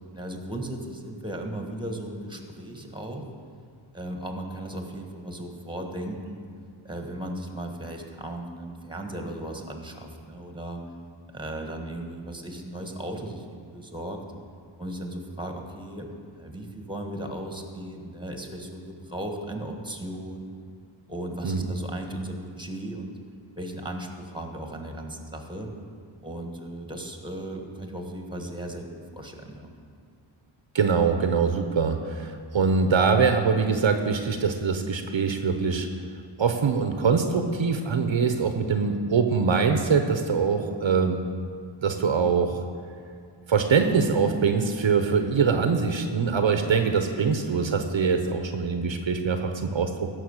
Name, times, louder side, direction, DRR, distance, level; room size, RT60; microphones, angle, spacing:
voice 1, 0.1-3.2 3.9-6.5 6.8-10.8 11.3-14.2 14.8-16.1 16.3-20.5 21.1-23.2 23.6-25.7 26.2-29.7, right 1 dB, 10° right, 3 dB, 1.5 m, -36 dB
voice 2, 30.7-35.9 36.4-41.2 41.8-42.6 43.5-50.1, right 5 dB, 65° right, 6 dB, 0.9 m, -23 dB
15.5 x 6.4 x 6.6 m, 2.2 s
wide cardioid pair, 90°, 48 cm